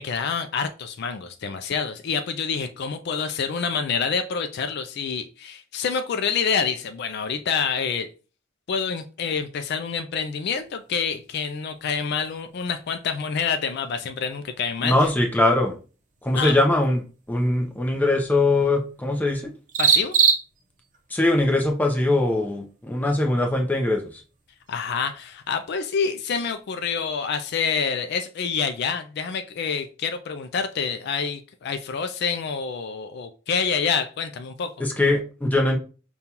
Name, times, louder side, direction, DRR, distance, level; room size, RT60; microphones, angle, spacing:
voice 1, 0.0-8.1 8.7-15.1 16.3-16.6 19.8-20.1 24.7-34.7, left 6 dB, 55° left, 8 dB, 0.3 m, -27 dB
sound 1, 10.1-26.9, right 7 dB, 40° right, 0.7 m, -32 dB
voice 2, 14.8-15.7 16.2-17.0 17.3-19.5 21.1-24.0 34.8-35.8, left 2 dB, 10° left, 2 dB, 0.6 m, -21 dB
5.3 x 2.3 x 2.8 m, 0.36 s
head